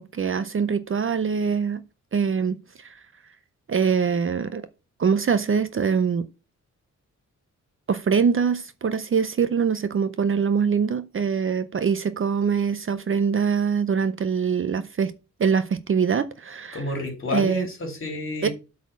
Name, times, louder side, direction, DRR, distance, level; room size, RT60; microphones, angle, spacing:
voice 1, 0.0-1.8 2.1-2.9 3.7-4.7 5.0-6.3 7.9-15.1 15.4-16.8 17.3-17.7 18.4-18.5, right 6 dB, 40° right, 0.6 m, -23 dB
voice 2, 16.7-18.5, left 2 dB, 40° left, 3.3 m, -30 dB
8.4 x 4.2 x 7.0 m
wide cardioid pair, 155°, 31 cm